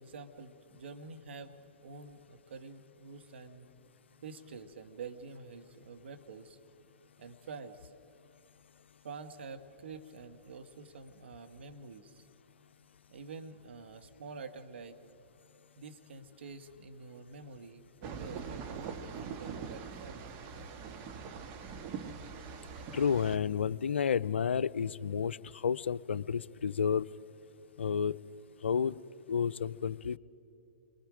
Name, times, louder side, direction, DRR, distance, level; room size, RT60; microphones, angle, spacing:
voice 1, 0.0-1.5 1.8-3.7 4.2-6.6 7.2-7.9 9.0-12.3 13.1-15.0 15.8-20.3, right 4 dB, 75° right, 8 dB, 1.5 m, -47 dB
sound 1, 18.0-23.4, right 6 dB, 40° right, 1.5 m, -43 dB
voice 2, 22.9-27.1 27.8-28.1 28.6-29.0 29.3-30.2, left 7 dB, 80° left, 16 dB, 0.5 m, -31 dB
29.5 x 22.5 x 5.0 m, 2.8 s
hypercardioid pair, 120°, 6 cm